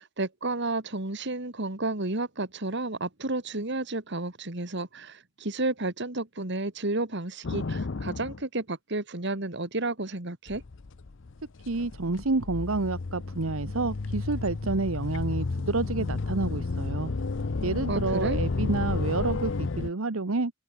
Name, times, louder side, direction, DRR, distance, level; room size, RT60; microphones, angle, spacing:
voice 1, 0.0-10.6 17.9-18.4, right 2 dB, 55° right, 2.3 m, -31 dB
sound 1, 7.4-8.4 10.5-19.9, left 3 dB, 60° left, 0.7 m, -32 dB
voice 2, 11.7-17.1 17.6-20.5, right 3 dB, 75° right, 1.1 m, -29 dB
open air
head